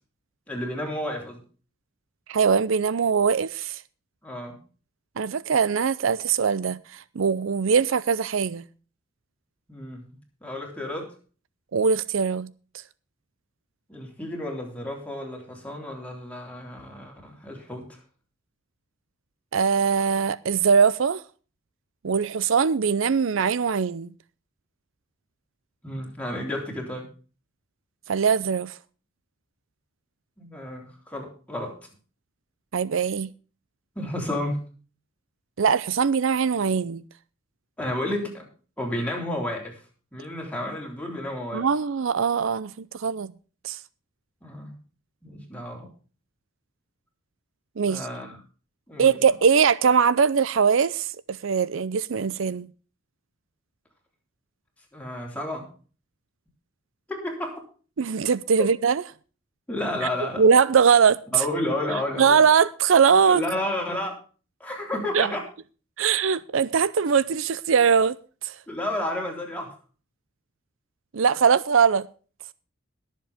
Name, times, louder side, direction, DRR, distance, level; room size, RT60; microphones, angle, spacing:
voice 1, 0.5-1.4 4.2-4.6 9.7-10.0 10.4-11.1 13.9-18.0 25.8-27.1 30.4-31.8 34.0-34.6 37.8-38.5 38.8-39.8 40.1-41.7 44.4-44.8 45.2-45.9 47.9-48.4 48.9-49.2 54.9-55.7 57.1-57.6 58.6-58.7 59.7-60.4 61.3-62.4 63.3-64.2 64.6-65.5 68.7-69.7, left 1 dB, 5° left, 3.6 m, -31 dB
voice 2, 2.3-3.8 5.2-8.6 11.7-12.5 19.5-21.2 22.0-24.1 28.1-28.7 32.7-33.3 35.6-37.0 41.5-43.3 43.6-43.8 47.8-48.1 49.0-52.7 58.0-59.0 60.4-61.2 62.2-63.4 65.1-65.3 66.0-68.2 68.4-68.5 71.1-72.1, right 6 dB, 65° right, 0.5 m, -21 dB
22.0 x 7.4 x 3.5 m
head